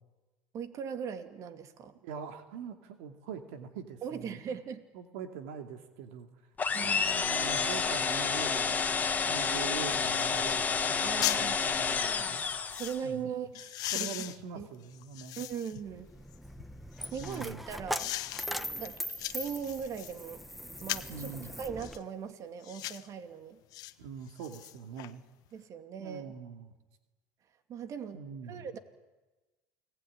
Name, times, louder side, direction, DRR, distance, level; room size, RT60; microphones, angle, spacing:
voice 1, 0.5-2.0 4.0-4.8 6.7-7.3 11.0-11.6 12.7-14.1 14.6-14.7 15.4-16.1 17.1-18.1 18.5-20.4 20.8-23.6 25.5-26.3 27.7-28.8, right 7 dB, 45° right, 8 dB, 2.6 m, -39 dB
voice 2, 2.0-4.6 4.9-6.3 6.8-8.9 9.3-12.4 13.0-13.3 13.9-15.4 17.2-17.6 21.1-21.5 24.0-25.2 26.0-26.7 28.1-28.7, right 6 dB, 80° right, 7 dB, 2.5 m, -43 dB
sound 1, 6.6-13.1, left 5 dB, 25° left, 1.9 m, -30 dB
sound 2, 9.9-10.0 10.5-10.6 10.9-11.5 12.2-13.0 13.5-15.8 16.3-17.4 17.9-18.5 18.8-20.2 20.8-21.2 21.8-22.0 22.6-23.1 23.7-23.9 24.3-25.1 25.5-25.6, left 15 dB, 60° left, 1.2 m, -38 dB
Coin (dropping), 15.9-22.0, equal, ahead, 1.3 m, -40 dB
29.0 x 20.0 x 9.9 m, 1.2 s
supercardioid pair, 105°, 7 cm